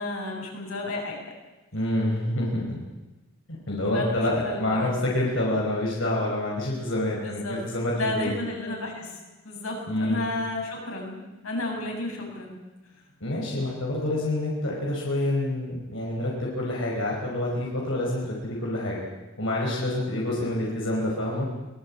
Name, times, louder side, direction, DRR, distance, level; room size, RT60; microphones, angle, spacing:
voice 1, 0.0-1.3 3.8-5.0 7.1-7.6 7.9-12.6, left 2 dB, 90° left, 0 dB, 7.3 m, -32 dB
voice 2, 1.7-2.8 3.5-8.3 9.9-10.2 13.2-19.0 19.4-21.5, left 1 dB, 65° left, -3 dB, 5.2 m, -27 dB
23.0 x 20.5 x 8.7 m, 1.1 s
head